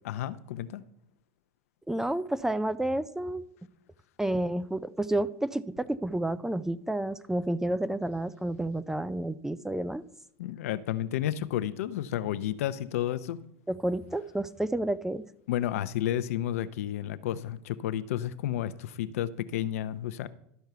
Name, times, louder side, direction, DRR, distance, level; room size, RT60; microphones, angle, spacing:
voice 1, 0.0-0.8 10.4-13.4 15.5-20.3, left 12 dB, 75° left, 0.6 m, -31 dB
voice 2, 1.9-3.4 4.2-10.0 13.7-15.2, right 1 dB, 5° right, 0.4 m, -30 dB
12.0 x 4.5 x 6.7 m
hypercardioid pair, 100°, 8 cm